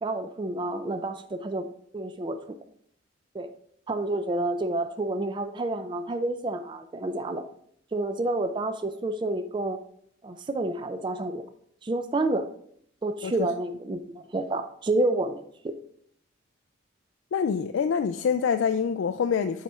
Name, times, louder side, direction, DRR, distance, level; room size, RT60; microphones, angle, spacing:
voice 1, 0.0-1.7 1.9-2.6 3.3-3.5 3.9-7.4 7.9-9.8 10.2-11.4 11.8-12.5 13.0-15.7, right 2 dB, 25° right, 0.3 m, -29 dB
voice 2, 17.3-19.6, left 6 dB, 80° left, 0.3 m, -26 dB
8.8 x 4.3 x 3.5 m
head